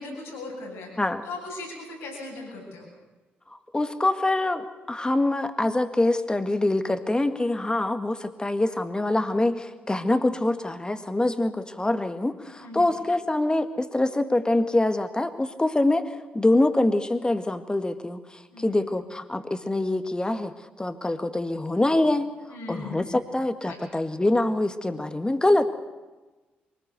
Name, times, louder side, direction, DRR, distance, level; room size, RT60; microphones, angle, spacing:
voice 1, 0.0-0.9 1.2-2.9 12.6-12.9 18.5-18.8 22.5-23.1 23.6-23.8, left 3 dB, 75° left, -3 dB, 7.9 m, -38 dB
voice 2, 3.7-20.5 20.8-22.3 22.7-25.6, left 2 dB, 15° left, 9 dB, 1.8 m, -25 dB
23.5 x 18.5 x 6.8 m, 1.2 s
hypercardioid pair, 40°, 5 cm